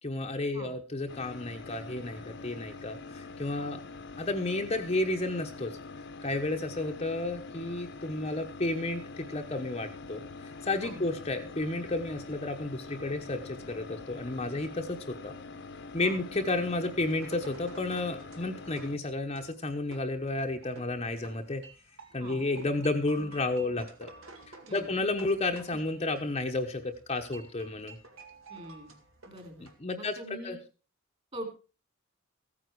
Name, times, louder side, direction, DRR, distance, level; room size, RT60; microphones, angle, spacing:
voice 1, 0.0-3.8 4.2-5.8 6.2-10.2 10.6-15.3 15.9-21.6 22.1-24.1 24.5-28.0 29.8-30.2 30.4-30.6, left 2 dB, 30° left, 4 dB, 1.0 m, -32 dB
sound 1, 1.1-19.0, left 3 dB, 55° left, 1.0 m, -45 dB
sound 2, 16.8-29.7, right 2 dB, 65° right, 2.3 m, -52 dB
voice 2, 28.5-29.0 29.3-29.7 29.9-30.6 31.3-31.5, equal, 30° right, 5 dB, 3.6 m, -43 dB
15.0 x 9.4 x 4.7 m, 0.35 s
head